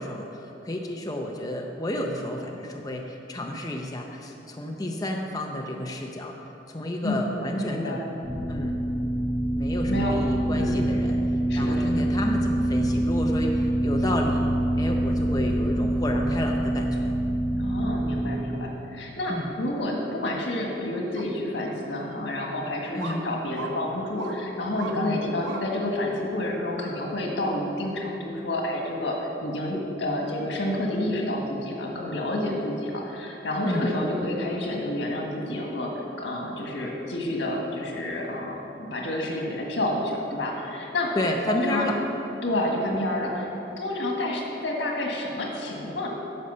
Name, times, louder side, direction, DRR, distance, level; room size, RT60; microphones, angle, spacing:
voice 1, 0.0-6.4 6.7-8.0 8.5-8.8 9.5-11.2 11.5-14.5 14.8-17.1 19.3-19.5 22.9-23.2 25.0-25.2 33.6-33.9 41.1-42.0, left 1 dB, 20° left, 1 dB, 0.6 m, -31 dB
voice 2, 7.0-8.1 9.9-10.2 10.5-11.0 11.5-11.9 17.6-35.9 36.2-41.1 41.5-41.9 42.4-43.5 43.8-46.1, left 1 dB, 90° left, 0 dB, 1.6 m, -29 dB
sound 1, 8.2-18.3, right 1 dB, 5° right, 1.8 m, -25 dB
sound 2, 21.2-21.3 22.0-22.1 23.0-23.2 23.5-23.7 24.2-24.4 24.8-25.0 25.4-25.6 26.1-26.2, right 4 dB, 85° right, 0.9 m, -36 dB
10.5 x 6.5 x 5.5 m, 3.0 s
head